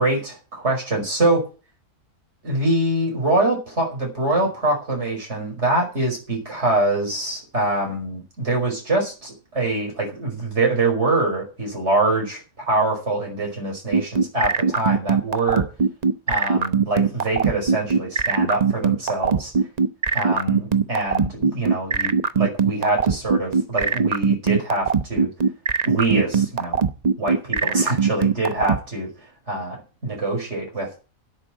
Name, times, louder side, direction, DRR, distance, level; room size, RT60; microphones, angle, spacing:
voice 1, 0.0-1.5 2.4-15.7 16.3-19.5 20.1-25.3 25.8-26.8 27.2-29.1 29.5-29.8 30.0-31.0, right 2 dB, 55° right, 0 dB, 5.6 m, -24 dB
sound 1, 13.9-28.8, right 5 dB, 35° right, 0.9 m, -19 dB
11.0 x 8.5 x 7.5 m, 0.33 s
omnidirectional pair, 1.4 m